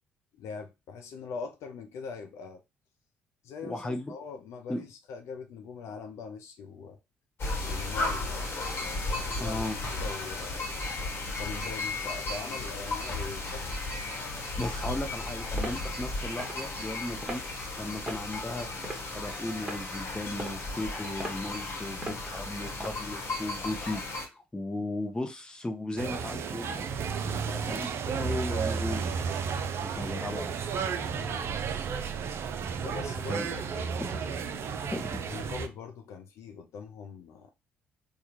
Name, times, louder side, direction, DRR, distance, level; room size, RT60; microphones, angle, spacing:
voice 1, 0.3-2.6 3.4-7.0 7.6-8.8 9.2-10.7 11.4-13.8 27.2-27.8 31.1-31.5 32.8-33.9 35.3-37.5, left 5 dB, 60° left, 0.5 m, -42 dB
voice 2, 3.6-4.1 4.7-4.8 9.4-9.8 14.6-17.4 17.8-18.7 19.1-27.0 27.7-27.9 28.1-29.2 29.8-30.5 31.2-31.3 33.3-33.5 34.0-34.1 34.9-35.1, left 1 dB, 15° left, 0.8 m, -36 dB
sound 1, 7.4-24.3, left 2 dB, 45° left, 1.1 m, -35 dB
sound 2, 15.6-15.8 16.4-16.6 17.2-17.4 18.1-18.3 18.8-19.2 19.6-19.8 20.4-20.6 21.2-21.4 22.0-22.2 22.8-23.0, right 1 dB, 20° right, 1.2 m, -38 dB
sound 3, 26.0-35.7, right 6 dB, 50° right, 0.4 m, -33 dB
3.4 x 2.3 x 3.0 m
figure-of-eight pair, 50°, 6 cm